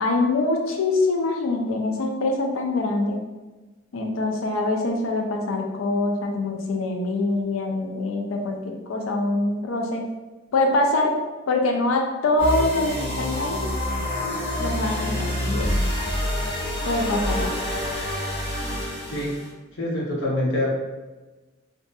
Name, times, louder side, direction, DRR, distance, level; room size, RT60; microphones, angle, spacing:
voice 1, 0.0-3.2 3.9-10.1 10.5-11.1 11.5-13.7 14.6-15.8 16.8-17.5, left 2 dB, 90° left, 2 dB, 0.4 m, -24 dB
sound 1, 12.4-19.5, left 1 dB, 30° left, 1.1 m, -27 dB
voice 2, 19.8-20.7, left 1 dB, 65° left, -5 dB, 0.8 m, -25 dB
2.6 x 2.4 x 2.2 m, 1.2 s
head